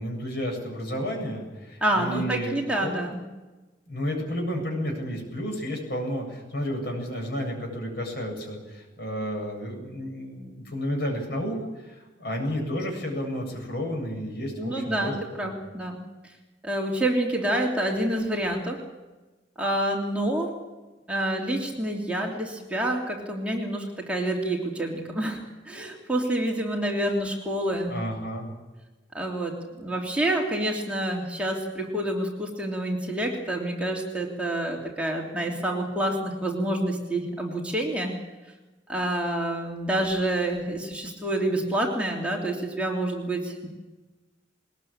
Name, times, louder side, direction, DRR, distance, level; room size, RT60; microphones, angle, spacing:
voice 1, 0.0-2.9 3.9-15.1 15.4-15.5 27.9-28.5, equal, 60° left, 2 dB, 7.8 m, -31 dB
voice 2, 1.8-3.2 14.6-16.0 16.6-18.8 19.6-20.5 21.1-27.9 29.1-38.1 38.9-43.7, right 1 dB, 5° right, -1 dB, 3.1 m, -28 dB
21.0 x 20.5 x 8.8 m, 1.2 s
head